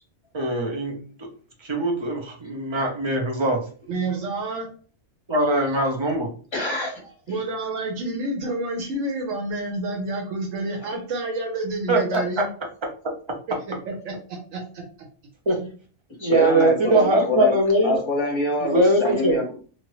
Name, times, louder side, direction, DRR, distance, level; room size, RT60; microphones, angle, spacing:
voice 1, 0.3-1.3 1.6-3.6 5.3-6.3 11.9-12.2 15.5-15.6 16.2-18.0 18.6-19.4, right 1 dB, 30° right, 1 dB, 0.5 m, -21 dB
voice 2, 3.9-4.7 7.3-12.5 13.5-14.2 14.5-15.1 16.9-17.1, right 2 dB, 90° right, 1 dB, 1.1 m, -29 dB
voice 3, 6.5-7.0 7.3-7.4 10.9-11.0 16.2-17.5 17.8-19.6, left 2 dB, 25° left, 0 dB, 0.8 m, -25 dB
2.8 x 2.5 x 3.0 m, 0.40 s
omnidirectional pair, 1.3 m